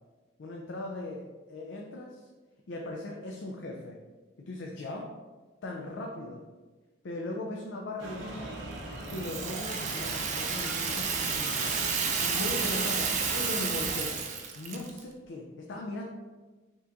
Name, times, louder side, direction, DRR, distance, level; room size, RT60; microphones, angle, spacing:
voice 1, 0.4-2.3 2.7-4.0 4.4-5.2 5.6-6.4 7.0-8.5 9.1-11.8 12.2-14.3 14.6-16.0, left 2 dB, 70° left, 0 dB, 0.4 m, -38 dB
sound 1, 8.0-14.0, right 1 dB, 85° right, 0.7 m, -40 dB
Rattle (instrument), 9.0-15.0, right 6 dB, 40° right, 0.4 m, -31 dB
5.7 x 2.9 x 2.5 m, 1.3 s
head